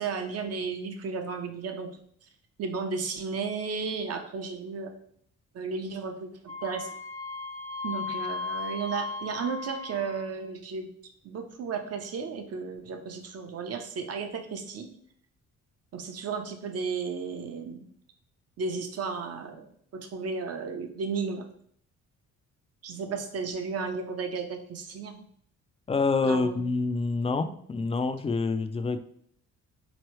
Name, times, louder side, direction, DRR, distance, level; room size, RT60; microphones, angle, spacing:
voice 1, 0.0-1.9 2.2-2.3 2.6-4.9 5.5-6.9 7.8-10.9 11.2-14.9 15.9-17.8 18.6-19.7 19.9-21.5 22.8-25.2 26.2-26.6, right 5 dB, 55° right, 5 dB, 0.8 m, -34 dB
Wind instrument woodwind instrument, 6.5-10.4, left 4 dB, 75° right, 1.2 m, -36 dB
voice 2, 25.9-29.0, left 3 dB, 20° left, 10 dB, 0.3 m, -27 dB
4.4 x 3.1 x 3.1 m, 0.63 s
cardioid pair, 90°, 30 cm